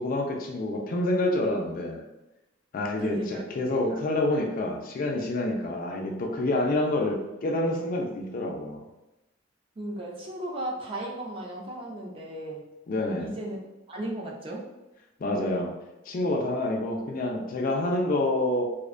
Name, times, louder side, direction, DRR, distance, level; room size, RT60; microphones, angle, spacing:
voice 1, 0.0-2.0 2.7-8.8 12.9-13.3 15.2-15.7 16.1-18.6, left 1 dB, 45° left, 1 dB, 0.3 m, -27 dB
voice 2, 3.0-3.4 9.8-12.7 13.2-13.6 13.9-14.7, right 1 dB, 30° right, -2 dB, 0.4 m, -35 dB
2.5 x 2.1 x 2.4 m, 1.0 s
head